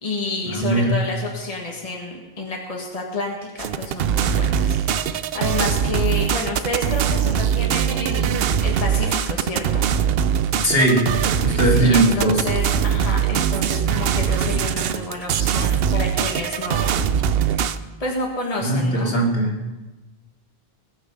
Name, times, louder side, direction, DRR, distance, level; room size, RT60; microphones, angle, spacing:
voice 1, 0.0-4.8 5.1-9.8 10.1-10.4 11.7-16.9 18.0-19.1, left 2 dB, 35° left, -1 dB, 1.8 m, -29 dB
voice 2, 0.5-0.9 10.6-11.1 11.4-12.5 18.6-19.5, right 1 dB, 70° left, -3 dB, 3.0 m, -19 dB
sound 1, 3.6-17.8, right 8 dB, 70° right, 0.8 m, -21 dB
20.5 x 7.2 x 5.4 m, 1.1 s
omnidirectional pair, 1.0 m